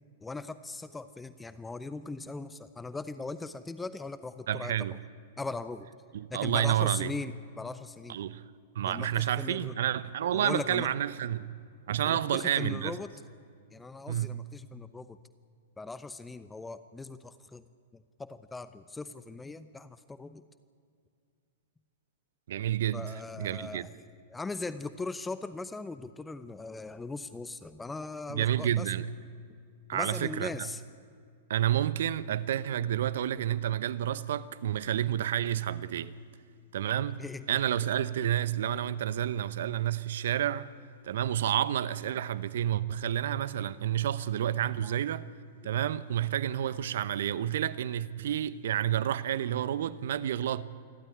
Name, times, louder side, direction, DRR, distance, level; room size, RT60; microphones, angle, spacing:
voice 1, 0.2-4.9 5.4-5.9 6.3-8.2 8.8-9.9 10.3-10.9 12.0-13.1 13.7-15.2 15.8-17.6 17.9-20.4 22.9-23.9 24.3-28.9 29.9-30.8 36.0-36.1 37.2-37.6 44.8-45.0, left 3 dB, 10° left, 0.8 m, -39 dB
voice 2, 4.5-4.9 6.1-7.1 8.1-8.4 8.7-11.5 11.9-12.9 14.1-14.3 22.5-23.0 23.4-23.9 28.3-29.1 29.9-30.5 31.5-36.1 36.7-37.2 37.5-40.7 41.0-45.2 45.6-50.6, right 11 dB, 65° right, 0.8 m, -29 dB
27.5 x 12.5 x 9.9 m
figure-of-eight pair, 105°, 0 cm